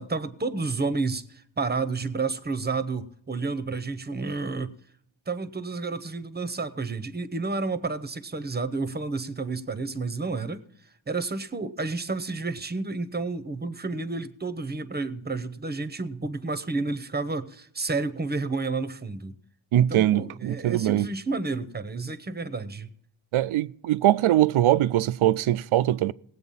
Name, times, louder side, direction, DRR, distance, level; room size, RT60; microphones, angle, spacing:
voice 1, 0.0-4.7 5.3-10.6 11.1-19.4 19.7-22.9, right 3 dB, 20° right, 0.8 m, -30 dB
voice 2, 19.7-21.1 23.3-26.1, right 13 dB, 90° right, 0.6 m, -22 dB
18.5 x 8.1 x 5.4 m
wide cardioid pair, 115°, 47 cm